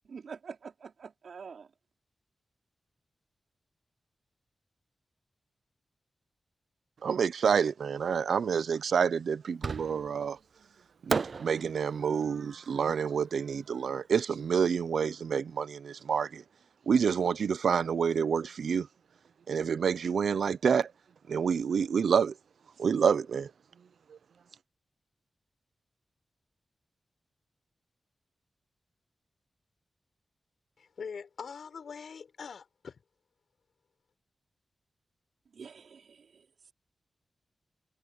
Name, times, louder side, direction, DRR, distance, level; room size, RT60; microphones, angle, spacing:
voice 1, 0.0-1.7 35.5-36.5, right 6 dB, 75° right, 4.7 m, -46 dB
voice 2, 7.0-10.4 11.1-16.4 16.9-18.9 19.5-20.9 21.3-22.3 22.8-23.5, right 6 dB, 90° right, 0.7 m, -28 dB
Fireworks, 9.6-10.3 11.1-14.2, right 5 dB, 50° right, 0.4 m, -36 dB
voice 3, 30.8-33.0, left 6 dB, 75° left, 5.0 m, -43 dB
wide cardioid pair, 160°, 0 cm